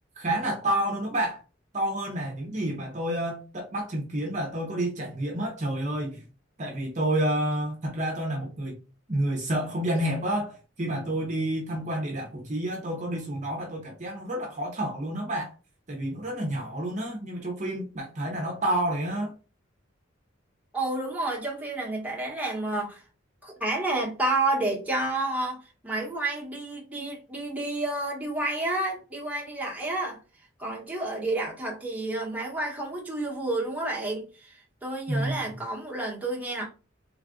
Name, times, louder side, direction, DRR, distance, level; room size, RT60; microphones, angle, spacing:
voice 1, 0.2-1.4 1.7-6.2 6.6-8.8 9.1-15.5 15.9-19.3 35.1-35.4, right 1 dB, 40° right, 0.8 m, -29 dB
voice 2, 20.7-23.0 23.4-30.2 30.6-36.6, right 2 dB, 10° right, 1.1 m, -30 dB
3.4 x 2.4 x 3.7 m
head